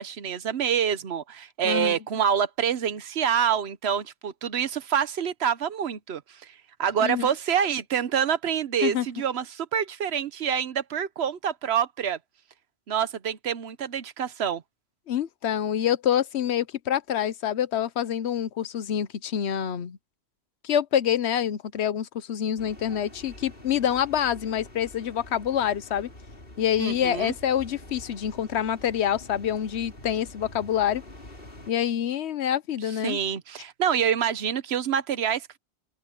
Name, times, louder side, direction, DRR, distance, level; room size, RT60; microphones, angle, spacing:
voice 1, 0.0-12.2 12.9-14.6 26.8-27.3 33.0-35.6, right 8 dB, 80° right, 1.1 m, -27 dB
voice 2, 1.6-2.0 7.0-7.3 8.8-9.1 15.1-20.0 20.6-26.1 26.6-31.0 31.7-33.2, left 9 dB, 85° left, 1.1 m, -26 dB
sound 1, 22.6-31.7, left 1 dB, 60° left, 4.2 m, -46 dB
open air
omnidirectional pair, 1.1 m